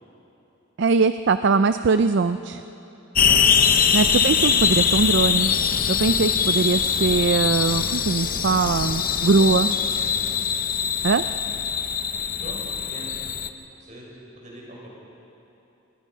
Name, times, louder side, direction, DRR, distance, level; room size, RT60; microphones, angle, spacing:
voice 1, 0.8-2.6 3.9-5.5 5.9-9.7 11.0-11.2, right 4 dB, 60° right, 11 dB, 0.4 m, -21 dB
sound 1, 3.1-13.5, left 7 dB, 45° left, 0.8 m, -22 dB
voice 2, 9.9-10.3 12.3-13.3 13.8-14.1 14.3-14.9, right 1 dB, 35° right, -3 dB, 6.4 m, -42 dB
26.0 x 21.0 x 5.6 m, 2.9 s
head